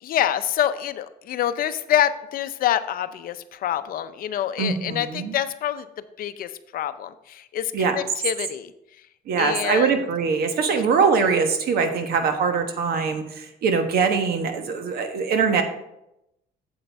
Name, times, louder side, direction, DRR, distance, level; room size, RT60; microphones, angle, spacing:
voice 1, 0.0-5.9 6.2-8.7 9.4-10.0, left 11 dB, 60° left, 12 dB, 0.6 m, -26 dB
voice 2, 4.6-5.3 7.7-8.0 9.3-15.6, right 5 dB, 65° right, 7 dB, 1.2 m, -22 dB
8.5 x 7.8 x 3.4 m, 0.84 s
cardioid pair, 110°, 17 cm